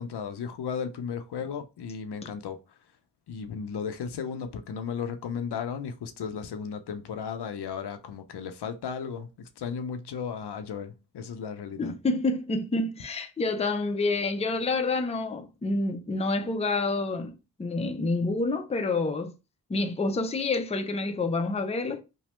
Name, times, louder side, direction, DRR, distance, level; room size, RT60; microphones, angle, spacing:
voice 1, 0.0-2.8 3.3-11.9, left 6 dB, 80° left, 0.6 m, -35 dB
voice 2, 11.8-19.3 19.7-22.0, left 3 dB, 15° left, 0.4 m, -28 dB
3.1 x 2.1 x 3.0 m
cardioid pair, 55°, 39 cm